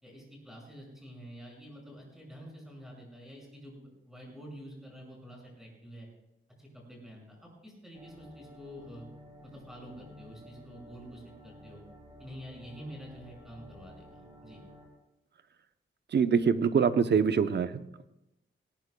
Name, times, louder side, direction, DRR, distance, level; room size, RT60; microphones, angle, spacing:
voice 1, 0.0-6.1 6.6-9.1 9.4-11.8 12.2-14.7, equal, ahead, -3 dB, 6.1 m, -48 dB
sound 1, 7.9-14.9, left 1 dB, 30° right, 5.8 m, -52 dB
voice 2, 16.1-17.7, right 6 dB, 55° right, 11 dB, 0.7 m, -24 dB
19.0 x 18.5 x 2.3 m, 0.91 s
wide cardioid pair, 145°, 21 cm